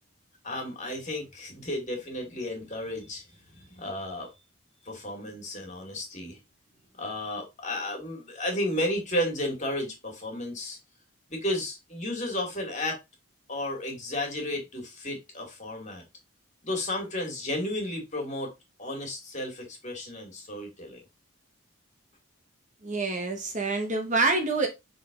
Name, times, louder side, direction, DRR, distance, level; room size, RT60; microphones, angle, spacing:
voice 1, 0.4-3.2 3.5-4.3 4.8-6.4 7.0-10.8 11.3-13.0 13.5-16.0 16.6-18.5 18.8-21.0, left 1 dB, 35° left, 2.4 m, -33 dB
voice 2, 22.8-24.7, right 3 dB, 35° right, 1.1 m, -26 dB
6.5 x 4.0 x 3.7 m
head